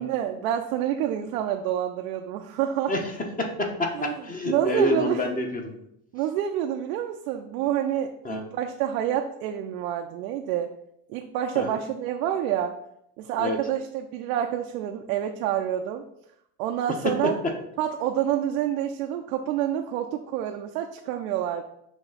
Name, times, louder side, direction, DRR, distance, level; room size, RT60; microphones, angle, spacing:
voice 1, 0.0-2.9 3.9-4.1 4.5-5.2 6.1-10.7 11.1-12.8 13.2-16.0 16.6-17.3 17.8-21.6, right 10 dB, 80° right, 3 dB, 0.7 m, -28 dB
voice 2, 3.4-5.7 8.2-8.4 11.5-11.8 13.4-13.6 17.0-17.1 17.4-17.5, left 1 dB, 20° left, 3 dB, 1.0 m, -27 dB
6.2 x 2.9 x 5.6 m, 0.75 s
supercardioid pair, 120°, 43 cm